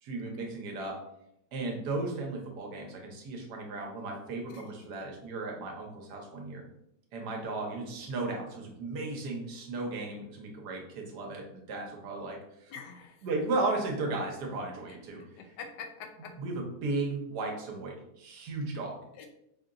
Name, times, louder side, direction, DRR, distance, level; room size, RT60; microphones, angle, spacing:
voice 1, 0.0-1.0 1.5-6.6 7.1-12.7 13.2-15.4 16.4-19.0, right 3 dB, 70° right, 2 dB, 1.4 m, -35 dB
voice 2, 12.7-13.3 14.9-15.0 15.4-16.3 19.1-19.3, left 6 dB, 85° left, 4 dB, 1.3 m, -45 dB
5.2 x 2.8 x 2.5 m, 0.79 s
omnidirectional pair, 1.9 m